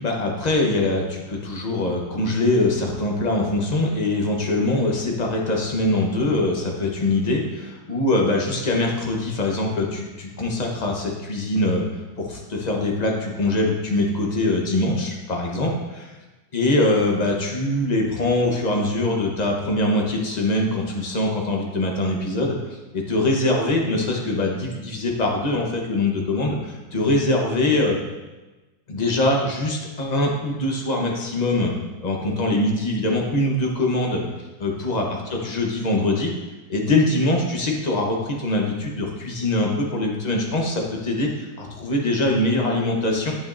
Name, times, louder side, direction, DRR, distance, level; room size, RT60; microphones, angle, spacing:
voice 1, 0.0-11.8 12.2-16.1 16.5-22.5 23.1-28.0 28.9-31.7 32.0-34.2 34.6-36.3 36.7-43.3, left 2 dB, 30° left, 0 dB, 0.9 m, -23 dB
8.8 x 7.2 x 2.6 m, 1.1 s
omnidirectional pair, 2.0 m